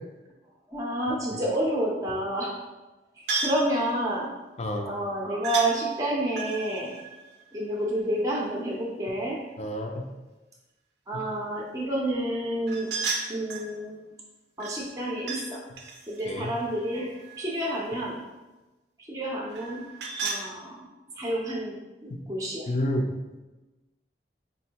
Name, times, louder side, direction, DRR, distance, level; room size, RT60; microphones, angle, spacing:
voice 1, 0.7-2.5 3.2-4.3 4.8-7.0 7.5-9.4 11.1-12.9 13.3-14.1 14.6-15.6 16.1-18.2 19.1-19.8 20.2-20.9 21.2-22.7, right 1 dB, 20° right, -4 dB, 0.5 m, -29 dB
sound 1, 3.3-3.7 5.4-5.7 6.3-8.1 12.7-13.7 14.6-15.5 15.8-17.7 19.5-20.5, right 4 dB, 65° right, 0.5 m, -34 dB
voice 2, 4.6-4.9 9.6-10.1 11.1-11.2 16.3-16.5 22.7-23.1, left 1 dB, 35° left, 3 dB, 0.4 m, -29 dB
4.2 x 2.6 x 2.8 m, 1.1 s
head